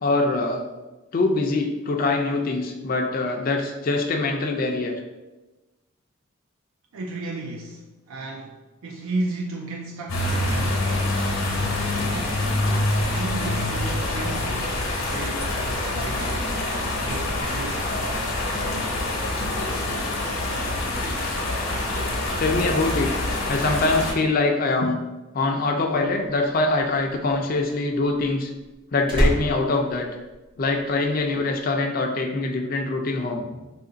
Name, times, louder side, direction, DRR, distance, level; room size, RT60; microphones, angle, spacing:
voice 1, 0.0-0.6 1.1-5.0 22.4-23.1 23.5-25.0 25.3-28.5 28.9-30.1 30.6-33.4, left 3 dB, 45° left, 3 dB, 0.4 m, -23 dB
voice 2, 6.9-11.2 11.5-12.5 13.1-18.3, right 2 dB, 80° right, 0 dB, 0.4 m, -34 dB
sound 1, 10.1-24.1, left 2 dB, 75° left, 0.8 m, -26 dB
Slam, 26.2-30.9 31.2-31.6, equal, 25° right, 0.6 m, -28 dB
2.9 x 2.5 x 3.8 m, 1.1 s
head